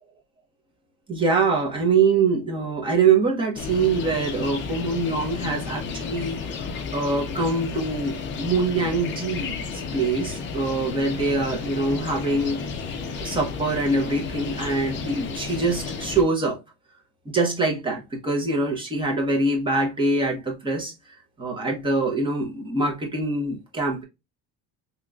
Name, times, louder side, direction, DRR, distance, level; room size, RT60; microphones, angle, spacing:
voice 1, 1.1-6.4 6.7-9.5 9.9-12.6 13.2-16.6 17.3-20.9 21.4-24.0, right 3 dB, 15° right, 0.8 m, -24 dB
sound 1, 3.6-16.2, left 5 dB, 35° left, 0.5 m, -32 dB
3.7 x 2.9 x 2.3 m
cardioid pair, 170°, 35 cm